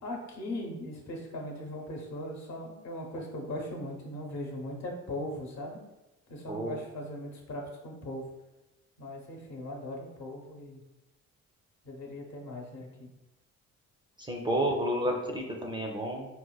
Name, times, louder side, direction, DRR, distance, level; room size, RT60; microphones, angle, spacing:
voice 1, 0.0-5.8 6.3-8.2 9.0-10.8 11.8-13.1, left 1 dB, 65° left, 0 dB, 0.9 m, -39 dB
voice 2, 14.3-16.3, right 1 dB, 15° right, 0 dB, 0.4 m, -30 dB
4.0 x 2.2 x 2.3 m, 0.99 s
cardioid pair, 90°, 30 cm